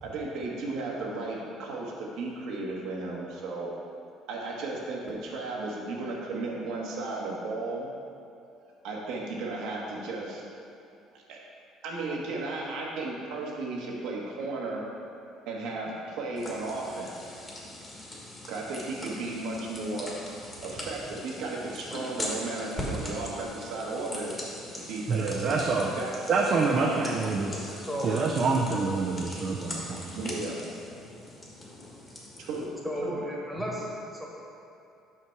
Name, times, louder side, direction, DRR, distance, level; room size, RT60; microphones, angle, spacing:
voice 1, 0.0-3.7 4.3-7.9 8.8-10.4 11.1-11.4 11.8-14.8 15.4-17.3 18.5-20.1 20.6-24.3 24.9-27.1 30.1-30.6 32.4-32.7 33.0-33.2, right 2 dB, 75° right, -3 dB, 1.4 m, -34 dB
sound 1, 16.4-32.7, left 1 dB, 20° left, 1.5 m, -41 dB
voice 2, 25.1-25.9 26.3-27.8 28.0-30.2, right 4 dB, 45° right, 0 dB, 0.5 m, -27 dB
voice 3, 32.8-33.9 34.2-34.3, equal, 5° left, -4 dB, 1.4 m, -33 dB
6.0 x 5.8 x 4.6 m, 2.6 s
cardioid pair, 120°, 0 cm